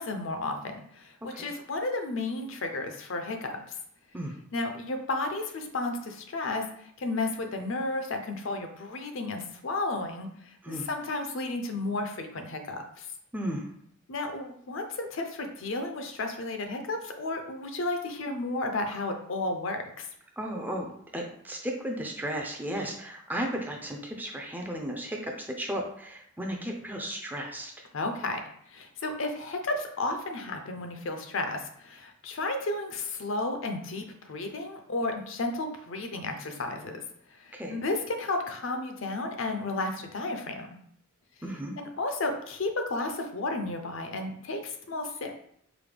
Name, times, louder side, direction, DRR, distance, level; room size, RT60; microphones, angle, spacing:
voice 1, 0.0-3.8 4.5-13.1 14.1-20.1 27.9-28.4 28.7-37.0 37.3-40.7 41.8-45.3, left 2 dB, 65° left, 5 dB, 0.5 m, -33 dB
voice 2, 13.3-13.7 20.4-27.7 37.5-37.8 41.4-41.8, equal, 10° right, 1 dB, 0.4 m, -34 dB
4.9 x 2.2 x 3.3 m, 0.68 s
head